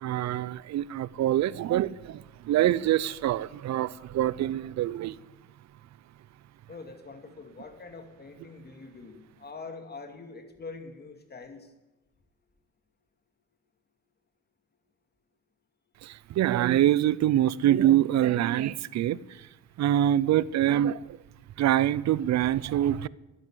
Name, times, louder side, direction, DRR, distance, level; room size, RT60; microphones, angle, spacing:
voice 1, 0.0-5.2 16.0-19.5 19.8-21.2 21.6-23.1, right 12 dB, 65° right, 0.6 m, -25 dB
voice 2, 6.7-11.7, left 4 dB, 35° left, 2.5 m, -44 dB
12.0 x 9.7 x 9.9 m
cardioid pair, 90°, 30 cm